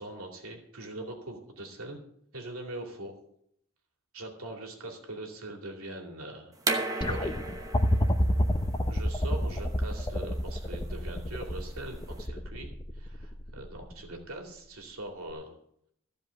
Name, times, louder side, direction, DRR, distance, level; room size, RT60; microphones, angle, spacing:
voice 1, 0.0-2.0 2.3-3.1 4.1-6.5 7.1-7.3 8.9-15.5, right 1 dB, 70° right, 2 dB, 2.6 m, -42 dB
sound 1, 6.6-12.2, right 2 dB, 15° right, 1.0 m, -36 dB
sound 2, 7.0-14.2 15.3-15.4, left 1 dB, 20° left, 0.8 m, -29 dB
15.0 x 5.2 x 8.3 m, 0.72 s
head